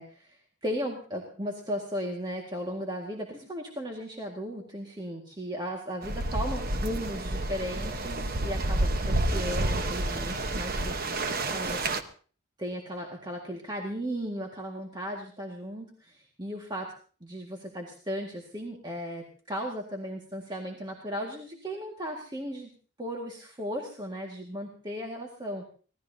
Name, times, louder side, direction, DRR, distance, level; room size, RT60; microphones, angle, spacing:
voice 1, 0.0-11.8 12.6-16.9 17.2-22.7 23.0-25.7, equal, 20° right, 0 dB, 1.9 m, -36 dB
sound 1, 6.0-12.0, right 2 dB, 45° right, 1.1 m, -29 dB
25.0 x 18.0 x 2.8 m, 0.41 s
head